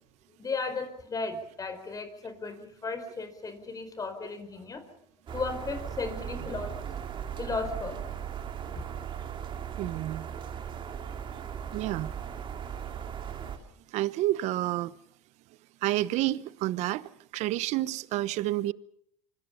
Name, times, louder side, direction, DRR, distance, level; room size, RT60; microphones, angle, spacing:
voice 1, 0.4-4.9 5.3-6.7 7.4-8.0 8.7-8.8, left 4 dB, 30° left, 4.7 m, -35 dB
sound 1, 5.3-13.6, right 8 dB, 40° right, 3.0 m, -38 dB
voice 2, 9.8-10.3 11.7-12.1 13.9-15.0 15.8-18.7, right 16 dB, 65° right, 1.0 m, -29 dB
25.5 x 25.0 x 5.7 m
supercardioid pair, 95°, 12 cm